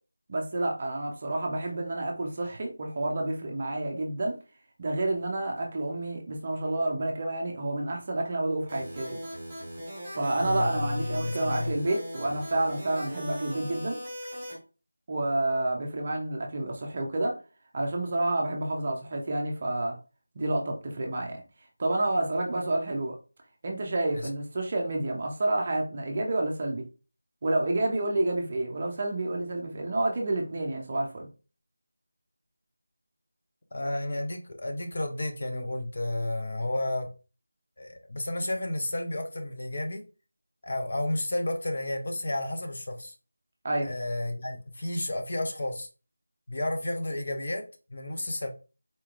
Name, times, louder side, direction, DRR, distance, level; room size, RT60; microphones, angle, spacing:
voice 1, 0.3-4.4 4.8-9.2 10.1-14.0 15.1-17.3 17.7-20.0 20.3-21.4 21.8-23.2 23.6-26.8 27.4-31.3 43.6-43.9, right 2 dB, 20° right, 1 dB, 0.5 m, -29 dB
sound 1, 8.7-14.5, equal, ahead, 1.5 m, -39 dB
voice 2, 10.4-11.7 24.1-24.3 33.7-37.1 37.8-40.0 40.6-43.1 43.8-45.9 46.5-47.6 47.9-48.5, left 1 dB, 35° left, 4 dB, 0.5 m, -31 dB
4.1 x 3.1 x 2.4 m, 0.33 s
figure-of-eight pair, 180°, 0 cm